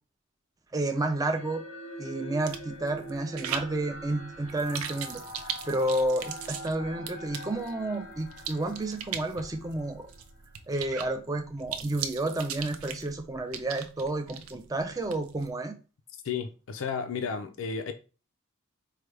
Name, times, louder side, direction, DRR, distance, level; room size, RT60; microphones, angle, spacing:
voice 1, 0.7-1.6 2.0-5.2 5.6-10.1 10.7-15.8, right 2 dB, 15° right, 0.4 m, -31 dB
sound 1, 0.9-10.4, equal, 85° left, 0.9 m, -44 dB
sound 2, 2.4-15.5, right 8 dB, 85° right, 0.5 m, -40 dB
voice 2, 16.2-17.9, left 6 dB, 65° left, 0.4 m, -33 dB
4.7 x 2.2 x 3.2 m
head